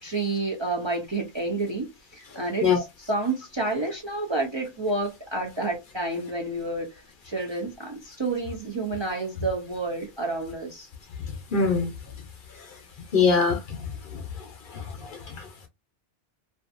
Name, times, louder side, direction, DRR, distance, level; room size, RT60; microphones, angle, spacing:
voice 1, 0.0-10.9, right 3 dB, 35° right, 0.5 m, -29 dB
voice 2, 11.5-11.9 13.1-13.8 14.7-14.8, left 5 dB, 60° left, 0.8 m, -21 dB
2.5 x 2.3 x 2.4 m
omnidirectional pair, 1.1 m